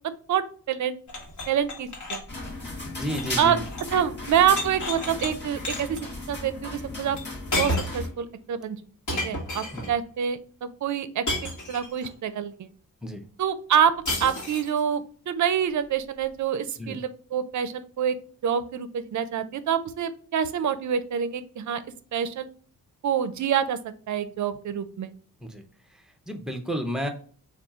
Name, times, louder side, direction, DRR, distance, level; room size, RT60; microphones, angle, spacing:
voice 1, 0.3-1.0 1.5-2.2 3.4-3.6 3.9-6.0 6.3-7.2 7.6-8.8 9.2-12.7 13.4-13.9 14.2-18.2 18.4-21.8 22.1-22.5 23.0-23.8 24.1-25.1, right 8 dB, 55° right, 13 dB, 0.5 m, -26 dB
sound 1, 1.1-4.0 4.3-5.3 5.7-6.0 7.2-7.3 7.5-8.1 9.1-9.9 11.3-12.1 14.1-14.8, left 1 dB, 55° left, 1.2 m, -32 dB
sound 2, 2.3-8.1, left 2 dB, 30° left, 1.3 m, -36 dB
voice 2, 2.9-3.6 9.7-9.8 13.0-13.2 16.8-17.0 25.4-25.6 25.9-27.1, equal, ahead, 5 dB, 0.5 m, -32 dB
4.2 x 2.3 x 3.5 m, 0.44 s
wide cardioid pair, 145°, 36 cm